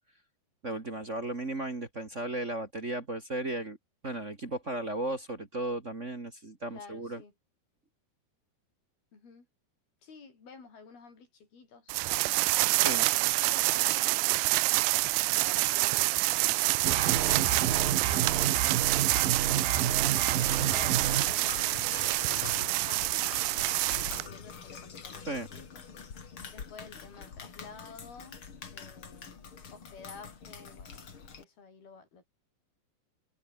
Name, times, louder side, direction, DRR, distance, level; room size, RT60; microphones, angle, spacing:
voice 1, 0.6-3.8 4.0-7.2 12.8-13.1 25.3-25.5, right 2 dB, 30° right, 1.4 m, -35 dB
voice 2, 6.7-7.3 9.1-9.5 10.0-11.9 13.4-14.8 15.2-18.6 19.2-20.3 20.7-23.1 23.4-25.8 26.5-28.4 28.7-32.3, left 5 dB, 65° left, 9.0 m, -51 dB
sound 1, 11.9-24.3, right 23 dB, 85° right, 2.7 m, -27 dB
sound 2, 16.9-21.2, right 9 dB, 60° right, 3.7 m, -30 dB
sound 3, 20.4-31.4, left 6 dB, 35° left, 3.0 m, -44 dB
omnidirectional pair, 4.8 m